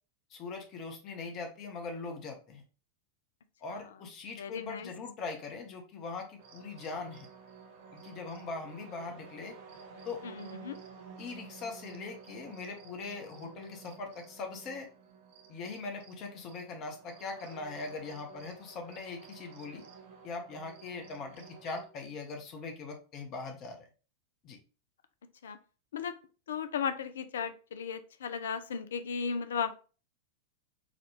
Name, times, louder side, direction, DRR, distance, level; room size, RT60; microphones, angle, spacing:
voice 1, 0.3-2.6 3.6-7.3 7.9-9.6 10.0-10.2 11.2-14.9 15.5-19.8 20.2-23.9 24.4-24.6, left 4 dB, 35° left, 3 dB, 0.8 m, -41 dB
voice 2, 4.4-4.9 10.2-10.8 25.4-25.6 25.9-26.2 26.5-29.8, left 6 dB, 65° left, 11 dB, 0.3 m, -35 dB
sound 1, 6.4-21.9, right 5 dB, 50° right, 0.6 m, -52 dB
4.0 x 2.3 x 3.0 m, 0.36 s
figure-of-eight pair, 90°, 0 cm